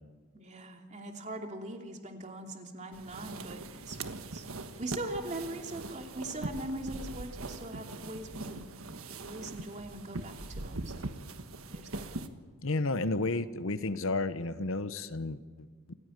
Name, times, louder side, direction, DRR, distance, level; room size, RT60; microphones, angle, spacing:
voice 1, 0.3-4.0 4.3-4.5 4.8-8.6 9.2-11.1 11.7-12.2, right 1 dB, 35° right, 3 dB, 2.8 m, -41 dB
sound 1, 2.9-12.3, right 2 dB, 75° right, 1.5 m, -41 dB
voice 2, 12.6-15.7, left 2 dB, 65° left, 12 dB, 1.0 m, -32 dB
28.0 x 16.0 x 9.3 m, 1.5 s
head